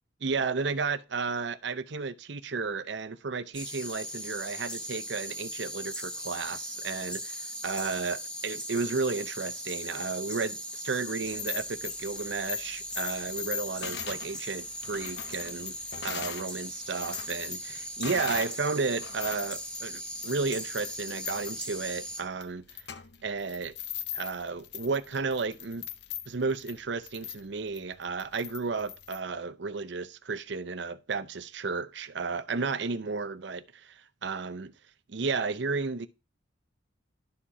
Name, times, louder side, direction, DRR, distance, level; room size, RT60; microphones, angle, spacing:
voice 1, 0.2-15.8 16.0-22.6 23.2-23.7 24.1-25.9 26.3-34.7 35.1-36.1, right 4 dB, 60° right, 0.6 m, -33 dB
sound 1, 3.5-22.2, equal, 5° left, 1.0 m, -39 dB
sound 2, 11.2-16.5 16.8-18.6 19.0-29.2, left 9 dB, 60° left, 0.7 m, -40 dB
11.5 x 4.3 x 4.8 m
head